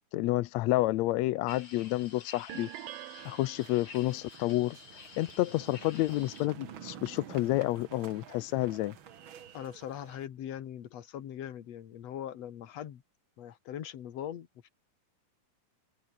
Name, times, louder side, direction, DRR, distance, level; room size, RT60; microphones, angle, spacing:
voice 1, 0.1-2.7 3.2-4.8 5.2-8.9, left 17 dB, 85° left, 1.5 m, -29 dB
sound 1, 1.5-6.5, left 5 dB, 40° left, 3.7 m, -50 dB
sound 2, 2.5-4.3, right 17 dB, 85° right, 2.7 m, -45 dB
sound 3, 3.2-10.3, right 8 dB, 50° right, 1.6 m, -50 dB
voice 2, 9.5-13.0 13.4-14.7, left 10 dB, 55° left, 2.4 m, -41 dB
omnidirectional pair, 4.0 m